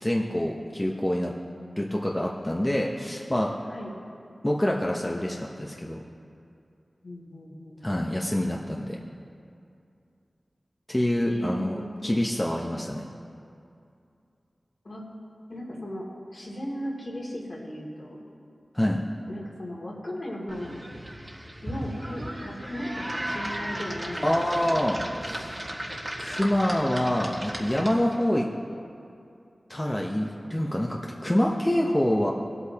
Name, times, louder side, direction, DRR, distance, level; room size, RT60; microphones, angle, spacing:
voice 1, 0.0-1.3 1.8-3.5 4.4-6.0 7.8-9.0 10.9-13.0 18.7-19.0 24.2-25.6 26.2-28.5 29.7-32.3, left 1 dB, 20° left, -2 dB, 0.9 m, -26 dB
voice 2, 7.0-7.8 11.3-11.9 14.8-15.0 15.5-16.1 16.3-18.2 19.3-20.8 21.6-24.3 24.6-24.8, equal, 60° left, -4 dB, 2.5 m, -36 dB
sound 1, 20.5-28.2, right 1 dB, 25° right, 1.6 m, -36 dB
19.0 x 8.2 x 2.9 m, 2.5 s
wide cardioid pair, 55°, 0 cm